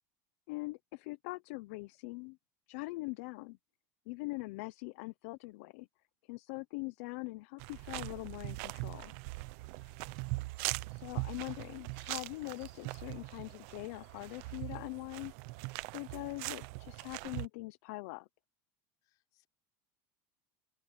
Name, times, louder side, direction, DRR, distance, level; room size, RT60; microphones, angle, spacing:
voice 1, 0.5-2.4 2.7-3.6 4.1-5.9 6.2-9.1 10.9-15.3 15.9-18.3, left 24 dB, 70° left, 0.6 m, -42 dB
sound 1, 7.6-17.5, right 23 dB, 65° right, 0.8 m, -41 dB
voice 2, 9.8-10.1 19.0-19.5, left 18 dB, 50° left, 5.0 m, -74 dB
open air
supercardioid pair, 155°, 8 cm